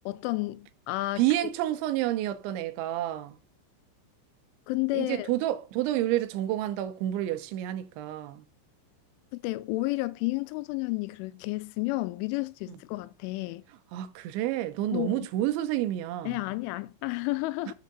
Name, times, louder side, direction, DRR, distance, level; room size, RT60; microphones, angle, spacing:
voice 1, 0.1-1.2 4.7-5.3 9.4-13.6 14.9-15.3 16.3-17.7, left 20 dB, 90° left, 3.1 m, -31 dB
voice 2, 1.2-3.4 4.9-8.4 13.9-16.4, right 13 dB, 85° right, 3.0 m, -29 dB
7.3 x 5.2 x 6.6 m
omnidirectional pair, 5.4 m